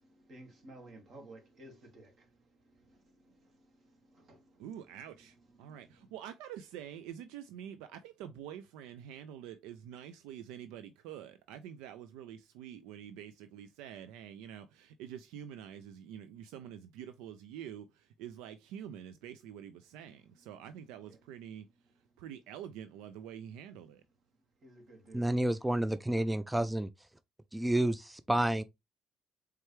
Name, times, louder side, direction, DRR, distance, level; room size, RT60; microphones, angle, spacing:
voice 1, 0.0-6.2 19.8-22.5 23.1-25.6, right 1 dB, 55° right, 2.0 m, -58 dB
voice 2, 4.6-21.7 22.2-24.0, right 9 dB, 85° right, 0.3 m, -47 dB
voice 3, 25.1-26.9 27.5-28.6, right 1 dB, 10° right, 0.3 m, -30 dB
4.4 x 3.3 x 3.1 m
supercardioid pair, 75°, 0 cm